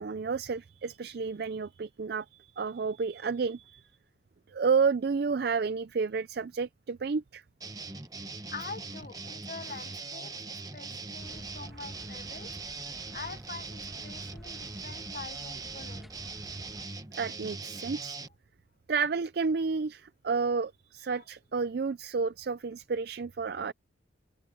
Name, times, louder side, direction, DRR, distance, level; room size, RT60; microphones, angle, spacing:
voice 1, 0.0-3.9 4.5-7.4 17.1-18.2 18.9-23.7, right 5 dB, 55° right, 0.4 m, -31 dB
sound 1, 7.6-18.3, right 3 dB, 20° right, 1.1 m, -41 dB
voice 2, 8.5-12.5 13.1-16.1 21.1-21.2, left 4 dB, 45° left, 0.9 m, -45 dB
sound 2, 11.2-16.9, equal, ahead, 1.7 m, -53 dB
open air
head